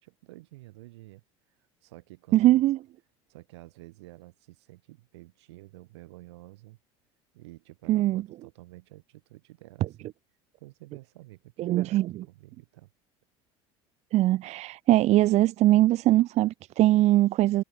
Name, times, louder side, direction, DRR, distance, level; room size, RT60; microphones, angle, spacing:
voice 1, 0.0-1.2 1.8-2.6 3.3-6.8 7.3-10.1 10.6-12.0 12.3-12.9, right 19 dB, 85° right, 6.0 m, -50 dB
voice 2, 2.3-2.8 7.9-8.2 11.6-12.2 14.1-17.6, right 15 dB, 55° right, 0.7 m, -21 dB
supercardioid pair, 90°, 14 cm